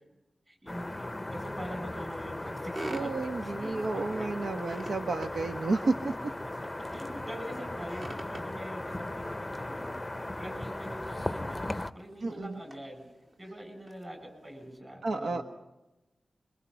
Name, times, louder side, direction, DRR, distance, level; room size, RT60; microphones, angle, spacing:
voice 1, 0.5-3.1 3.4-4.4 6.9-13.0 13.4-15.4, equal, 25° right, 5 dB, 7.9 m, -44 dB
sound 1, 0.7-11.9, left 1 dB, 10° left, 0.8 m, -37 dB
sound 2, 1.0-14.8, right 1 dB, 40° right, 3.9 m, -49 dB
voice 2, 2.9-6.1 12.2-12.6 15.0-15.4, right 3 dB, 70° right, 5 dB, 1.4 m, -31 dB
27.0 x 24.5 x 5.8 m, 0.99 s
wide cardioid pair, 135°, 0 cm